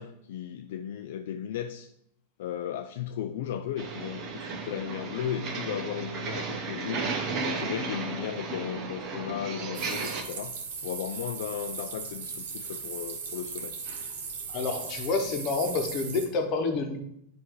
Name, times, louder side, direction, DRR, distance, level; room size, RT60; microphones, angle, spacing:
voice 1, 0.0-1.9 2.4-7.1 7.4-10.6 10.8-13.8, left 9 dB, 70° left, 7 dB, 0.3 m, -35 dB
sound 1, 3.8-10.2, right 4 dB, 35° right, 0.9 m, -34 dB
sound 2, 9.7-16.3, right 5 dB, 75° right, 1.2 m, -38 dB
voice 2, 14.5-17.0, left 4 dB, 40° left, 4 dB, 1.1 m, -28 dB
7.5 x 2.7 x 4.7 m, 0.76 s
supercardioid pair, 130°, 0 cm